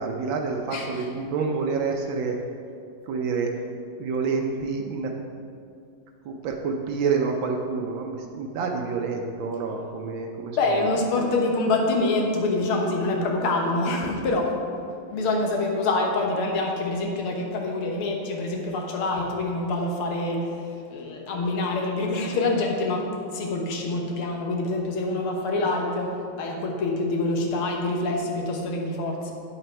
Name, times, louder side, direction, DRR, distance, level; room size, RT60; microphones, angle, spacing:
voice 1, 0.0-2.6 3.1-3.5 4.0-5.1 6.2-10.9, right 4 dB, 70° right, 2 dB, 1.4 m, -28 dB
voice 2, 10.5-14.5 15.1-29.3, left 2 dB, 90° left, 1 dB, 2.1 m, -26 dB
8.7 x 8.3 x 4.5 m, 2.4 s
omnidirectional pair, 2.3 m